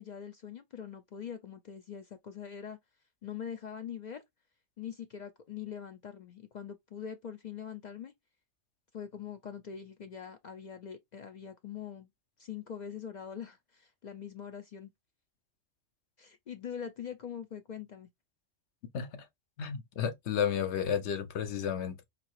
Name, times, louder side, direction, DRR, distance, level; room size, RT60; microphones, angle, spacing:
voice 1, 0.0-2.8 3.2-4.2 4.8-8.1 8.9-12.1 12.4-14.9 16.2-18.1, left 8 dB, 55° left, 0.5 m, -43 dB
voice 2, 18.9-19.3 19.6-22.0, left 8 dB, 75° left, 1.0 m, -32 dB
4.1 x 2.7 x 3.0 m
omnidirectional pair, 1.2 m